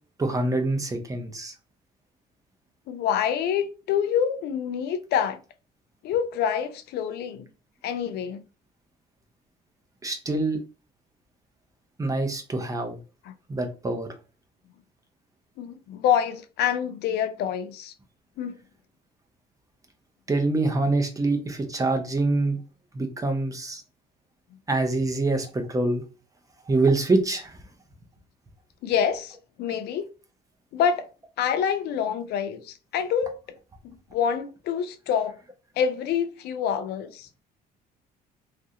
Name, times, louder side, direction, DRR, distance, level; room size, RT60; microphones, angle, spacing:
voice 1, 0.2-1.5 10.0-10.6 12.0-13.0 13.5-14.1 20.3-22.6 22.9-23.8 24.7-26.0 26.7-27.6, right 2 dB, 20° right, 0.7 m, -25 dB
voice 2, 2.9-5.4 6.0-7.5 7.8-8.4 13.3-13.4 15.6-17.9 18.4-18.6 28.8-30.1 30.7-31.1 31.4-33.4 34.1-35.4 35.8-37.3, left 8 dB, 75° left, 0.5 m, -26 dB
3.0 x 2.5 x 2.7 m
cardioid pair, 110°, 17 cm